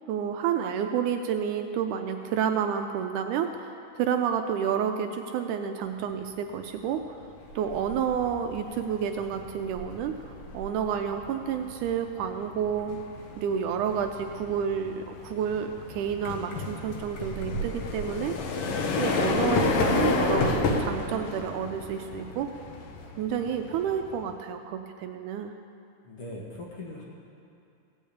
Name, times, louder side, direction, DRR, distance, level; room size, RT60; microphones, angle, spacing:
voice 1, 0.1-7.0 7.6-10.2 10.5-13.0 13.4-18.4 19.0-22.5 23.2-25.5, right 8 dB, 80° right, 6 dB, 1.9 m, -30 dB
sound 1, 6.9-7.2 7.6-24.3, left 3 dB, 70° left, 1.4 m, -31 dB
Meow, 7.4-21.3, right 4 dB, 35° left, 2.3 m, -46 dB
voice 2, 26.0-27.0, left 2 dB, 55° left, -3 dB, 1.9 m, -40 dB
16.5 x 5.6 x 8.5 m, 2.6 s
omnidirectional pair, 3.8 m